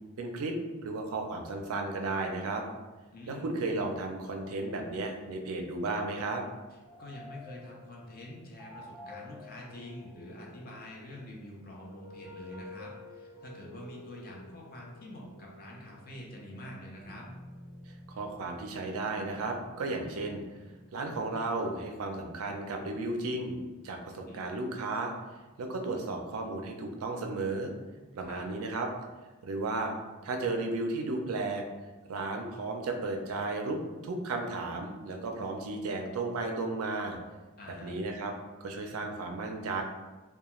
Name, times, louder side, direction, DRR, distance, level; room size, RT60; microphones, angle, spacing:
voice 1, 0.2-2.6 3.3-6.4 18.1-20.4 20.9-23.6 23.8-25.1 25.6-27.7 28.1-28.9 29.4-29.9 30.2-31.6 32.1-37.2 37.8-38.3 38.6-39.8, right 3 dB, 70° right, 3 dB, 0.4 m, -34 dB
voice 2, 3.1-3.5 7.0-17.3 24.2-24.4 28.2-28.5 37.6-38.0, left 1 dB, 45° left, -2 dB, 0.5 m, -46 dB
sound 1, 6.8-24.5, left 1 dB, 15° right, 0.6 m, -52 dB
2.3 x 2.2 x 2.9 m, 1.2 s
head